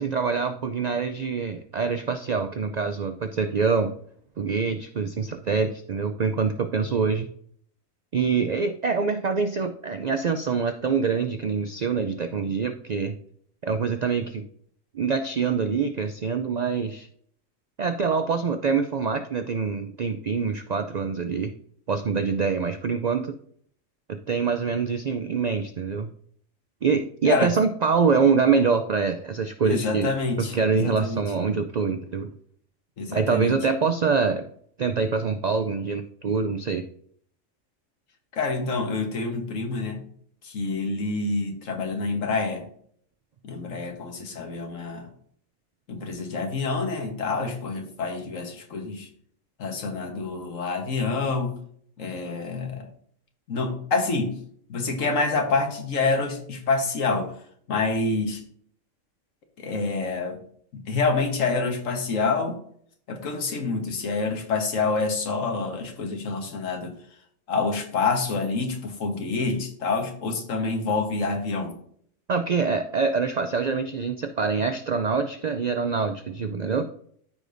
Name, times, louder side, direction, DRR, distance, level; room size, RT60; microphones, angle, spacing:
voice 1, 0.0-4.0 4.4-7.3 8.1-13.2 13.6-14.4 14.9-17.1 17.8-21.5 21.9-23.3 24.1-26.1 26.8-30.1 30.4-32.3 33.1-34.5 34.8-36.8 72.3-76.8, right 5 dB, 70° right, 7 dB, 0.4 m, -25 dB
voice 2, 29.6-31.2 33.0-33.6 38.3-40.0 40.4-42.7 43.4-45.1 45.9-49.1 49.6-51.5 52.0-52.9 53.5-54.4 54.7-57.3 57.7-58.4 59.6-60.4 60.7-62.6 63.1-66.9 67.5-71.7, left 3 dB, 75° left, 4 dB, 1.6 m, -27 dB
13.5 x 5.0 x 2.6 m, 0.63 s
omnidirectional pair, 1.4 m